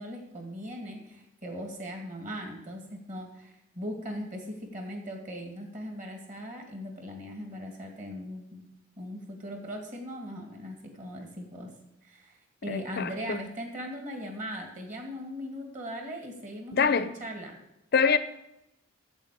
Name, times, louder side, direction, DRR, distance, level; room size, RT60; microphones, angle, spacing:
voice 1, 0.0-8.7 9.0-11.7 12.0-12.4 12.6-17.5, equal, 35° right, 2.4 m, -39 dB
voice 2, 12.7-13.4 16.7-17.1 17.9-18.2, left 5 dB, 50° left, 0.5 m, -25 dB
8.2 x 8.1 x 8.5 m
head